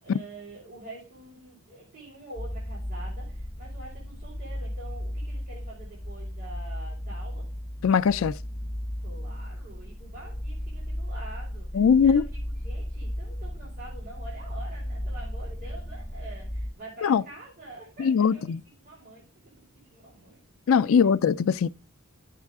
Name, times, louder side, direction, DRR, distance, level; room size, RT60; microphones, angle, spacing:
voice 1, 0.0-7.5 9.0-12.2 12.5-18.5 18.8-19.2 19.5-19.6 19.9-20.4 20.7-21.1, right 2 dB, 40° right, 4.6 m, -46 dB
sound 1, 2.4-16.7, equal, 30° left, 1.0 m, -35 dB
voice 2, 7.8-8.3 11.7-12.2 17.0-17.2 18.0-18.6 20.7-21.7, left 6 dB, 65° left, 0.4 m, -21 dB
10.5 x 7.5 x 3.5 m
head